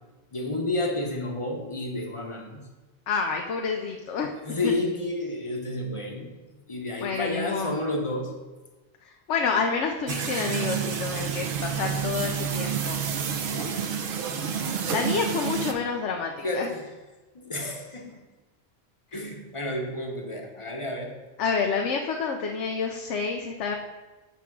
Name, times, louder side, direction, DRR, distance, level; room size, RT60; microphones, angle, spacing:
voice 1, 0.3-2.6 4.4-6.4 6.7-8.4 13.5-14.0 16.4-16.9 17.3-18.2 19.1-21.2, left 2 dB, 30° left, 2 dB, 0.8 m, -31 dB
voice 2, 3.1-4.3 4.6-4.7 7.0-7.8 9.0-13.0 14.9-16.7 21.4-23.8, left 5 dB, 85° left, 2 dB, 1.0 m, -28 dB
sound 1, 10.1-15.7, right 7 dB, 60° right, 0.8 m, -29 dB
8.8 x 3.5 x 6.0 m, 1.2 s
omnidirectional pair, 1.2 m